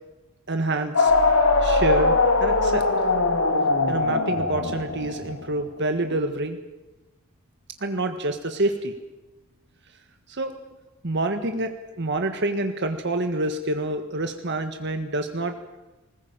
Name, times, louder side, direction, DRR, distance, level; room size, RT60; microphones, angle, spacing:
voice 1, 0.5-1.1 1.6-3.0 3.9-6.6 7.8-8.9 10.3-10.5 11.0-15.6, right 2 dB, 55° right, 6 dB, 1.6 m, -27 dB
sound 1, 0.9-5.5, left 3 dB, 85° left, 3.0 m, -21 dB
sound 2, 1.1-4.0, equal, 45° left, 4.0 m, -34 dB
20.5 x 20.0 x 8.9 m, 1.1 s
head